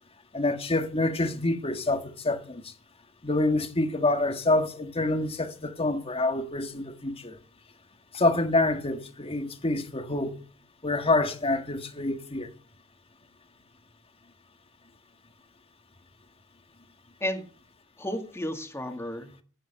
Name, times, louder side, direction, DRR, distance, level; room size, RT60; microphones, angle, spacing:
voice 1, 0.3-2.7 3.2-7.4 8.1-10.4 10.8-12.5, left 2 dB, 30° left, 1.6 m, -27 dB
voice 2, 18.0-19.4, left 1 dB, 15° left, 2.2 m, -33 dB
12.0 x 9.4 x 7.1 m
head